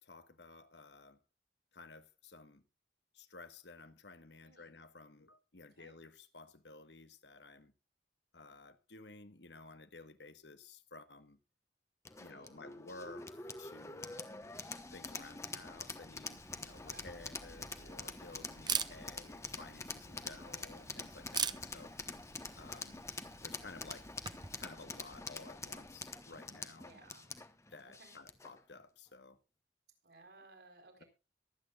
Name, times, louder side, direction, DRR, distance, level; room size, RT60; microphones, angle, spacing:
voice 1, 0.0-1.2 1.7-2.6 3.1-7.7 8.3-11.4 12.2-14.3 14.9-21.9 22.5-23.0 23.4-24.1 24.6-26.9 27.7-29.4, left 3 dB, 75° left, 1.4 m, -54 dB
voice 2, 4.4-4.7 5.7-5.9 12.2-12.5 16.9-17.3 18.8-19.2 20.0-20.9 21.4-22.0 23.3-23.7 26.8-27.3 27.9-28.2 30.0-31.1, right 3 dB, 70° right, 4.9 m, -61 dB
sound 1, 12.0-28.6, left 3 dB, 15° left, 1.1 m, -46 dB
Camera, 16.3-24.6, right 7 dB, 25° right, 0.7 m, -44 dB
23.0 x 8.9 x 2.4 m
head